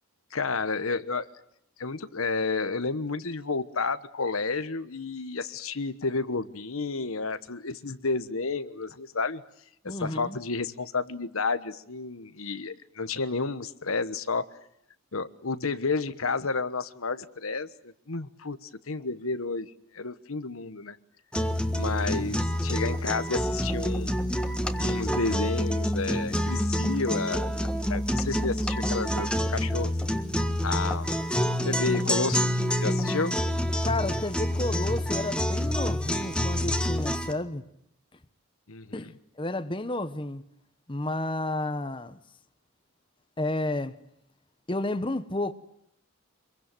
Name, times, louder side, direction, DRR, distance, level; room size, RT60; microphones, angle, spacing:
voice 1, 0.3-1.3 1.8-9.4 9.8-14.4 15.1-21.0 21.7-24.2 24.7-30.0 30.6-31.1 31.6-32.5 32.8-33.4 38.7-39.1, left 4 dB, 90° left, 1.3 m, -31 dB
voice 2, 9.8-10.4 33.8-37.6 38.9-40.4 40.9-42.2 43.4-43.9 44.7-45.5, left 2 dB, 25° left, 1.2 m, -31 dB
sound 1, 21.3-37.3, equal, 5° left, 1.5 m, -27 dB
25.5 x 22.5 x 9.2 m
head